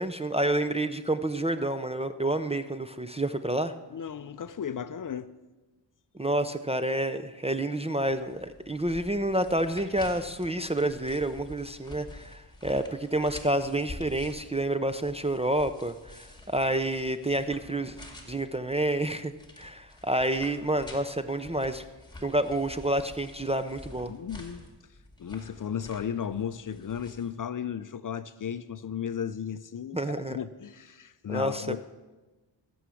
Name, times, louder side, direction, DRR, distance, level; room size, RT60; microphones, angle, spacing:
voice 1, 0.0-3.7 6.1-18.0 18.3-21.8 22.2-24.1 29.9-30.4 31.3-31.8, right 1 dB, 15° right, 0.4 m, -29 dB
voice 2, 3.9-5.3 24.1-24.7 25.2-30.0 30.3-31.8, left 8 dB, 45° left, 0.5 m, -35 dB
sound 1, 8.1-27.3, left 2 dB, 10° left, 2.1 m, -49 dB
14.5 x 7.0 x 6.2 m
cardioid pair, 85°, 48 cm